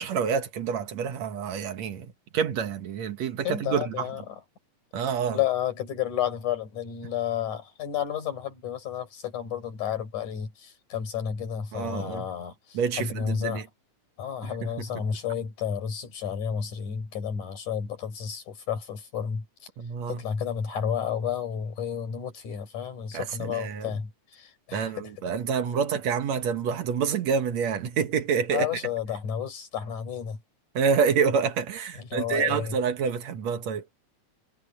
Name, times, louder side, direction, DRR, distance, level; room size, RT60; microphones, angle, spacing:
voice 1, 0.0-2.1 2.3-4.1 4.9-5.4 11.7-12.3 12.7-13.6 14.4-14.7 19.8-20.2 23.1-23.9 24.7-28.7 30.7-33.8, right 6 dB, 65° right, 2.6 m, -27 dB
voice 2, 3.4-4.4 5.0-5.1 5.3-13.6 14.2-19.5 20.1-24.9 28.5-30.4 32.0-32.8, left 8 dB, 85° left, 5.5 m, -31 dB
omnidirectional pair, 3.4 m